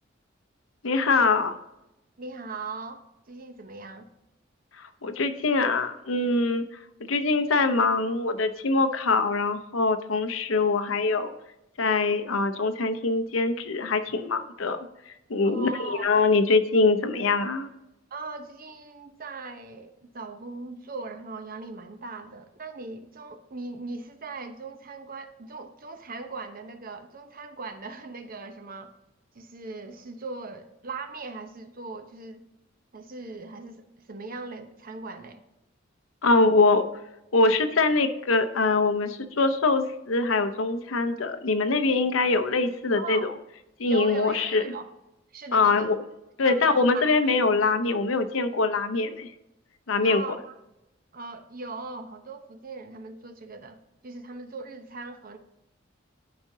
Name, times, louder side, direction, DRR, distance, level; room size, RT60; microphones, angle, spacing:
voice 1, 0.8-1.6 5.0-6.6 7.1-11.3 11.8-14.8 15.1-17.7 36.2-36.9 37.3-43.3 43.8-44.6 45.5-46.0 46.4-49.3 49.9-50.2, left 3 dB, 85° left, 9 dB, 0.8 m, -23 dB
voice 2, 2.2-4.1 15.4-16.1 18.1-28.9 29.3-32.4 32.9-35.4 43.0-43.3 43.9-44.9 45.3-45.9 46.4-47.1 50.0-50.5 51.1-53.8 54.0-55.4, right 3 dB, 45° right, 8 dB, 0.8 m, -39 dB
12.0 x 5.1 x 2.7 m, 0.93 s
head